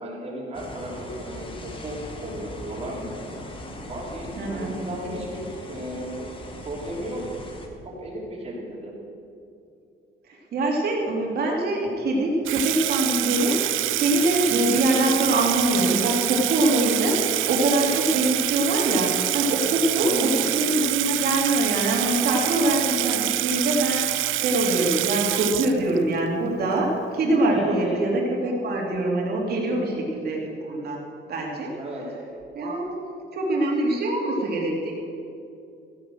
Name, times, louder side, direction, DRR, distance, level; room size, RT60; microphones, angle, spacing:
voice 1, 0.0-3.3 3.9-6.4 6.6-7.2 7.8-8.9 20.0-20.5 27.5-28.0 31.8-32.0, right 1 dB, 30° right, -3 dB, 3.3 m, -35 dB
sound 1, 0.5-7.7, left 2 dB, 25° left, 1.4 m, -40 dB
voice 2, 4.4-4.7 10.3-13.6 13.9-17.2 17.5-24.0 24.3-31.0 31.3-31.8 32.5-33.0 33.3-34.9, right 1 dB, 50° right, -1 dB, 2.8 m, -24 dB
Water tap faucet / Sink (filling or washing), 12.5-26.2, right 15 dB, 80° right, 0.5 m, -26 dB
15.0 x 10.5 x 6.4 m, 2.6 s
cardioid pair, 175°, 20 cm